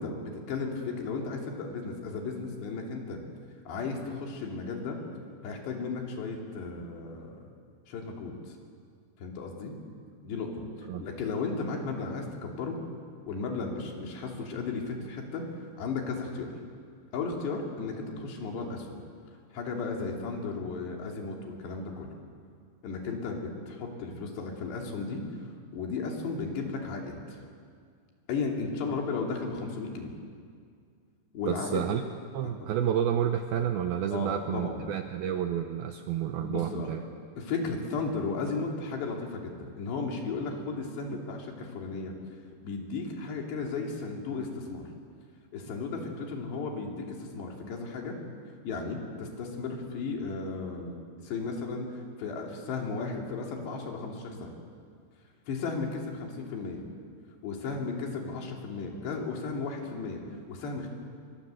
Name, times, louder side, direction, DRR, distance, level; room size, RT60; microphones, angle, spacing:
voice 1, 0.0-3.2 3.7-5.0 5.4-7.5 7.9-8.6 9.2-9.7 10.2-12.8 13.3-15.4 15.8-16.5 17.1-19.0 19.5-22.1 22.8-27.4 28.3-30.1 31.3-31.8 32.4-32.7 34.1-34.8 36.4-36.9 37.4-42.1 42.6-44.8 45.5-48.2 48.6-51.9 52.2-54.5 55.5-56.8 57.4-60.9, left 4 dB, 65° left, 1 dB, 5.0 m, -35 dB
voice 2, 31.5-32.0 32.3-37.0 41.1-41.2, right 9 dB, 90° right, 6 dB, 2.2 m, -30 dB
25.0 x 24.0 x 7.8 m, 2.2 s
omnidirectional pair, 5.5 m